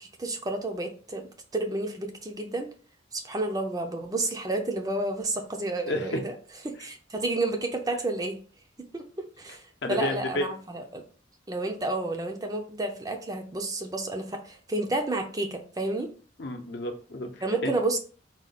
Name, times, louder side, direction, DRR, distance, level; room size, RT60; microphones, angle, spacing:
voice 1, 0.0-2.7 3.1-6.3 6.6-8.4 8.9-11.0 11.5-16.1 17.4-18.0, right 2 dB, 20° right, 4 dB, 0.5 m, -31 dB
voice 2, 5.9-6.2 9.8-10.4 16.4-17.7, left 1 dB, 55° left, 4 dB, 0.7 m, -31 dB
4.1 x 2.3 x 4.0 m, 0.39 s
head